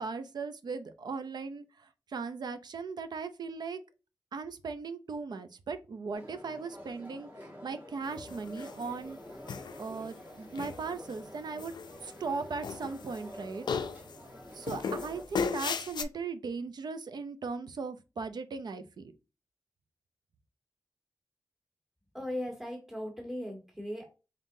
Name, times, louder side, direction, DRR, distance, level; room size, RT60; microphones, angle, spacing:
voice 1, 0.0-3.8 4.3-9.2 9.8-11.7 12.0-13.6 14.5-19.1, right 4 dB, 70° right, 0.5 m, -38 dB
sound 1, 6.1-15.2, left 1 dB, 25° right, 1.3 m, -48 dB
sound 2, 8.3-8.9 9.5-10.1 10.5-11.1 11.6-12.3 12.6-13.3 13.7-14.2 14.7-16.0, left 6 dB, 90° left, 0.4 m, -35 dB
voice 2, 22.1-24.2, left 1 dB, 5° right, 1.3 m, -38 dB
3.8 x 3.6 x 2.6 m
wide cardioid pair, 135°, 7 cm